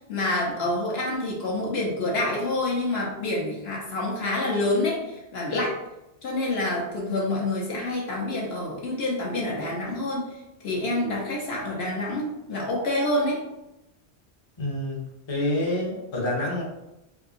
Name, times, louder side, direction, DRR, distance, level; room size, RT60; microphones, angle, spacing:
voice 1, 0.0-5.7 6.2-10.3 10.6-13.4, left 2 dB, 70° left, -3 dB, 1.1 m, -27 dB
voice 2, 14.6-16.6, left 1 dB, 30° left, -3 dB, 0.7 m, -27 dB
3.5 x 2.8 x 2.6 m, 0.92 s
omnidirectional pair, 1.1 m